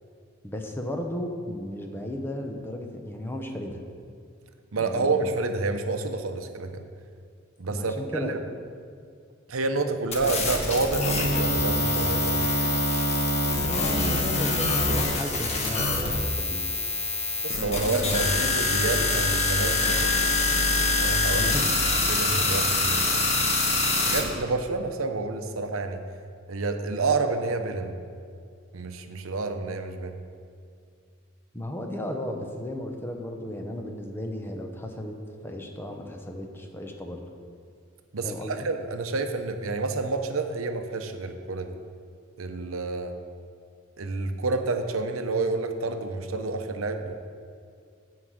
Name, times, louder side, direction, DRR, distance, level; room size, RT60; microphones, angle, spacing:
voice 1, 0.4-3.8 4.7-5.3 7.7-8.4 13.6-16.7 21.3-21.7 31.5-35.1 35.4-37.2 38.2-38.6, left 1 dB, 10° left, 3 dB, 0.8 m, -34 dB
voice 2, 4.7-6.9 7.6-8.4 9.5-12.5 17.4-20.2 21.0-21.5 22.1-23.2 24.0-26.0 26.5-28.0 28.7-30.2 38.1-41.8 42.4-43.1 44.0-47.1, right 3 dB, 85° right, 7 dB, 0.8 m, -29 dB
sound 1, 10.1-24.2, left 2 dB, 35° left, 1.2 m, -25 dB
sound 2, 19.9-22.7, left 1 dB, 85° left, 1.3 m, -43 dB
9.6 x 4.8 x 7.9 m, 2.3 s
head